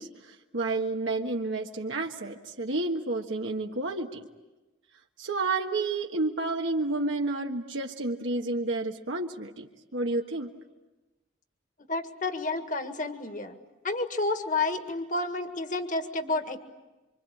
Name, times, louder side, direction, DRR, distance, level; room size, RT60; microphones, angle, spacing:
voice 1, 0.0-4.3 5.2-10.5, right 2 dB, 80° right, 1 dB, 1.6 m, -30 dB
voice 2, 11.9-13.6 13.8-16.6, left 3 dB, 40° left, 7 dB, 1.8 m, -30 dB
26.5 x 26.0 x 8.6 m, 1.1 s
head